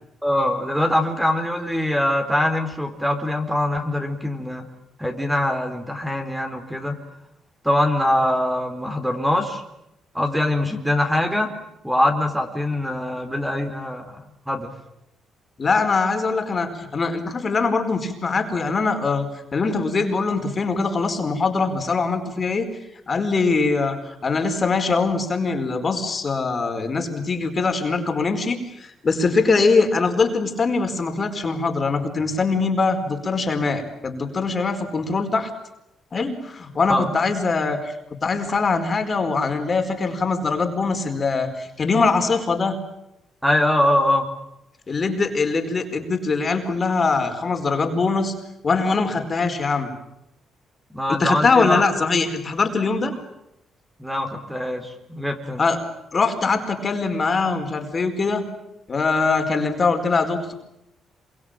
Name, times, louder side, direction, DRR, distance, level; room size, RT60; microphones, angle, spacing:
voice 1, 0.2-4.6 5.0-7.0 7.6-9.6 10.1-11.5 11.8-14.2 14.5-14.7 36.9-37.1 43.4-44.3 50.9-51.8 54.0-55.6, left 1 dB, 5° right, 5 dB, 4.1 m, -23 dB
voice 2, 15.6-19.3 19.5-22.7 23.1-35.5 36.1-37.9 38.2-42.8 44.9-48.3 48.6-49.9 51.1-53.1 55.4-55.8 56.1-58.5 58.9-60.5, left 4 dB, 35° left, 6 dB, 4.7 m, -22 dB
27.0 x 24.0 x 9.1 m, 0.84 s
cardioid pair, 90°, 0 cm